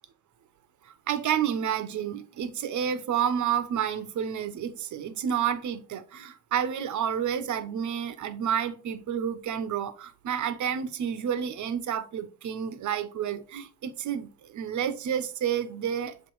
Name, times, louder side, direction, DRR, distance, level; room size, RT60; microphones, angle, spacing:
voice 1, 0.8-16.3, right 8 dB, 55° right, 1.0 m, -30 dB
7.4 x 3.1 x 4.6 m
supercardioid pair, 75°, 35 cm